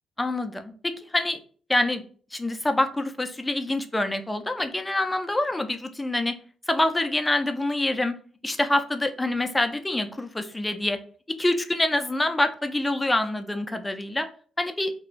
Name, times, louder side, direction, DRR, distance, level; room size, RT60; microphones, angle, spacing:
voice 1, 0.2-1.4 1.7-2.0 2.3-6.4 6.7-8.1 8.4-11.0 11.4-14.3 14.6-14.9, left 1 dB, 15° left, 7 dB, 0.4 m, -26 dB
2.4 x 2.2 x 3.0 m, 0.43 s
cardioid pair, 90°, 0 cm